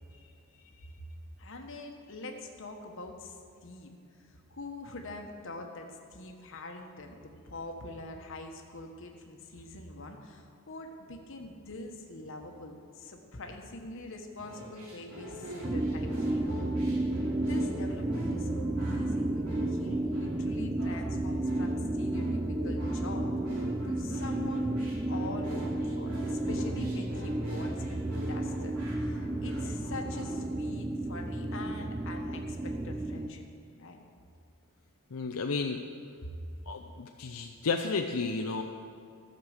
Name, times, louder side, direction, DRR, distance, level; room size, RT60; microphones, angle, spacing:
voice 1, 1.4-3.3 3.6-3.9 4.3-16.6 17.4-28.0 28.3-33.4 33.8-34.0 36.2-36.4, left 2 dB, 60° left, 3 dB, 1.3 m, -44 dB
sound 1, 14.4-30.3, equal, 80° right, 2.7 m, -44 dB
sound 2, 15.6-33.3, right 1 dB, 20° right, 0.4 m, -32 dB
voice 2, 35.1-35.8 36.7-38.6, left 4 dB, 80° left, 3 dB, 0.6 m, -32 dB
14.0 x 6.6 x 6.6 m, 2.4 s
head